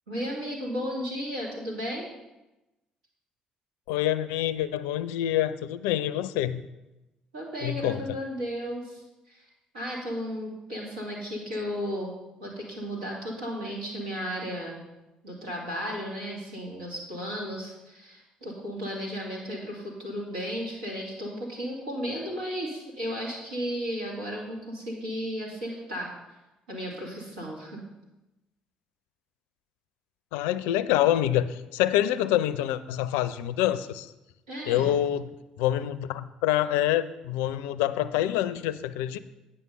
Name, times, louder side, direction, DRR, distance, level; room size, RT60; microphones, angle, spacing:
voice 1, 0.1-2.1 7.3-9.5 9.7-12.1 12.4-14.8 15.2-26.1 26.7-27.8 34.5-35.0, equal, 85° right, -4 dB, 2.5 m, -34 dB
voice 2, 3.9-6.7 7.6-8.2 30.3-34.1 34.7-35.3 35.6-39.2, left 12 dB, 75° left, 15 dB, 0.4 m, -26 dB
9.5 x 5.6 x 5.6 m, 0.99 s
hypercardioid pair, 50°, 4 cm